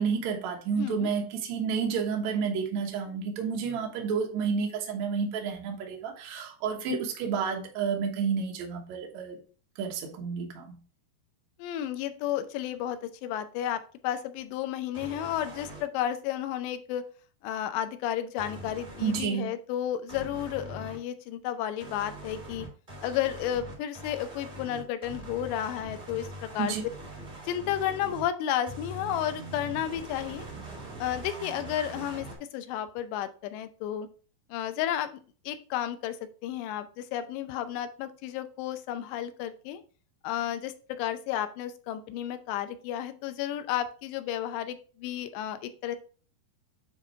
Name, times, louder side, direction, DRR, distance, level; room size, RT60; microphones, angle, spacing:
voice 1, 0.0-9.4 9.8-10.8 19.0-19.5 26.6-26.8, right 6 dB, 65° right, 1 dB, 1.8 m, -30 dB
voice 2, 0.7-1.1 11.6-17.0 17.4-22.7 23.0-26.7 27.5-30.5 31.0-32.3 32.5-34.1 34.5-35.2 35.5-39.8 40.2-46.0, left 11 dB, 90° left, 10 dB, 2.9 m, -32 dB
sound 1, 14.9-15.8 18.4-19.3 20.1-21.0 21.8-28.3 28.7-32.4, right 1 dB, 15° right, 2.5 m, -42 dB
8.8 x 3.7 x 3.4 m, 0.39 s
omnidirectional pair, 4.9 m